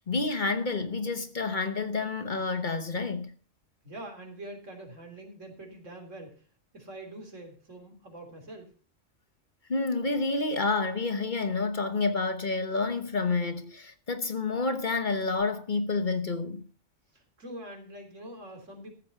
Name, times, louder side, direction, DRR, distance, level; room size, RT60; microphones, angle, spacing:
voice 1, 0.0-3.3 9.7-16.7, left 3 dB, 40° left, 1.1 m, -29 dB
voice 2, 3.8-6.4 6.7-8.7 17.1-18.9, right 1 dB, 80° right, 3.7 m, -44 dB
14.5 x 7.4 x 5.6 m
omnidirectional pair, 1.3 m